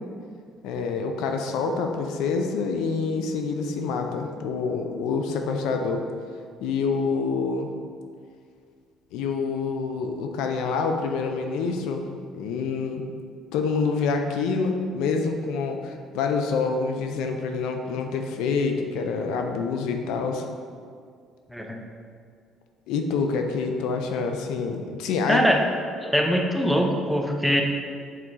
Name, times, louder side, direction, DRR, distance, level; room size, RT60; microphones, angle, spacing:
voice 1, 0.6-6.0 6.6-7.7 9.1-12.0 12.3-13.0 13.5-20.5 22.9-25.4, left 4 dB, 80° left, 4 dB, 0.6 m, -27 dB
voice 2, 21.5-21.8 25.3-25.6 26.0-27.6, equal, ahead, 1 dB, 0.6 m, -22 dB
6.4 x 4.4 x 3.8 m, 2.2 s
cardioid pair, 120°, 0 cm